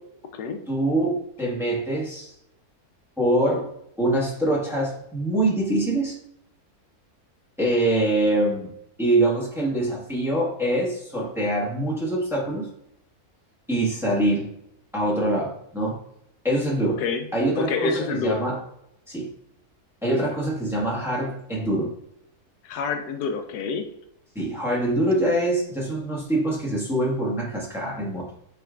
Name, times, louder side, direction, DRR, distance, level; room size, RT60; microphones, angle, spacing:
voice 1, 0.7-2.3 3.2-3.7 4.0-6.1 7.6-8.7 9.0-12.7 13.7-14.5 14.9-16.0 16.4-17.0 17.3-18.6 19.1-19.3 20.0-21.9 24.3-28.3, right 1 dB, ahead, -4 dB, 1.1 m, -24 dB
voice 2, 17.6-18.4 22.6-23.9, left 5 dB, 90° left, 6 dB, 1.2 m, -27 dB
7.0 x 3.1 x 2.4 m, 0.74 s
omnidirectional pair, 1.6 m